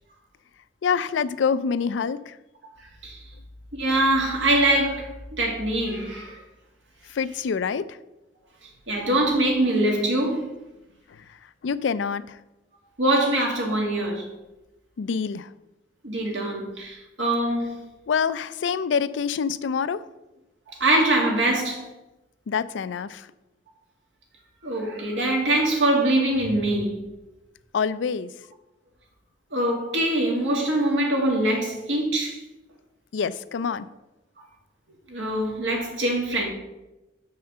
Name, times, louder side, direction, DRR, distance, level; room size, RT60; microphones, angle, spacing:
voice 1, 0.8-2.4 7.1-8.0 11.6-12.4 15.0-15.5 18.1-20.0 22.5-23.3 27.7-28.3 33.1-33.9, left 6 dB, 85° left, 0.4 m, -26 dB
voice 2, 3.8-6.4 8.9-10.5 13.0-14.3 16.0-17.8 20.8-21.8 24.6-27.1 29.5-32.4 35.1-36.5, right 1 dB, 90° right, 2.1 m, -23 dB
6.4 x 5.7 x 5.7 m
head